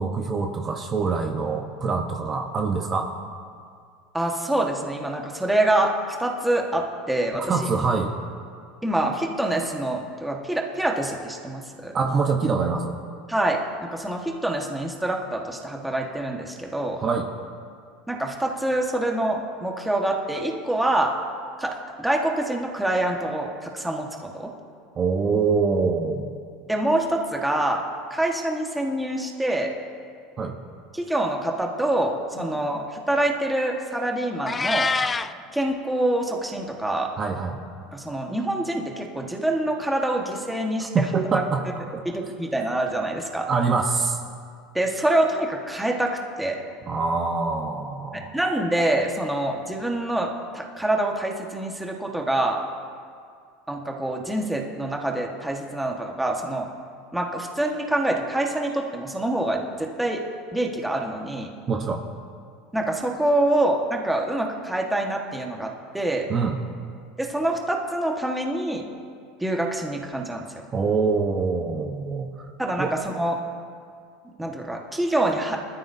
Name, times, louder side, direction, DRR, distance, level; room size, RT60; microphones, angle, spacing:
voice 1, 0.0-3.1 7.5-8.1 11.9-13.0 17.0-17.3 25.0-26.3 30.4-30.6 32.4-32.5 37.2-37.6 41.1-41.6 41.9-42.0 43.5-44.2 46.9-48.3 61.7-62.0 66.3-66.6 70.7-72.3 72.8-72.9, right 4 dB, 30° right, 2 dB, 1.1 m, -24 dB
voice 2, 4.1-5.9 6.2-7.7 8.8-12.0 13.3-17.0 18.1-21.2 21.6-24.5 26.7-27.8 28.1-29.7 30.9-34.9 35.5-37.1 37.9-41.0 42.0-43.5 44.7-46.6 48.1-52.6 53.7-56.7 57.1-60.2 60.5-61.5 62.7-66.3 67.2-68.8 69.4-70.4 72.6-73.4 74.4-75.6, right 1 dB, 5° right, 0 dB, 1.5 m, -26 dB
Meow, 34.5-35.3, left 4 dB, 15° left, 0.4 m, -24 dB
20.5 x 13.0 x 2.7 m, 2.2 s
supercardioid pair, 125°, 0 cm